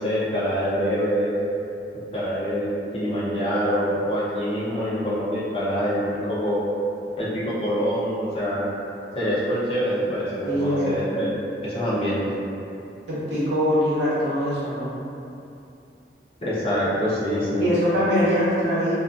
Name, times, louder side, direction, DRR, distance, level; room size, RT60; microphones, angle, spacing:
voice 1, 0.0-1.4 2.1-6.0 6.3-6.6 7.2-8.6 9.1-11.4 11.6-12.2 16.4-17.7, equal, 30° left, -9 dB, 0.5 m, -25 dB
voice 2, 10.4-10.9 13.1-14.9 17.6-18.9, equal, 70° right, -10 dB, 0.8 m, -22 dB
2.5 x 2.3 x 2.4 m, 2.7 s
head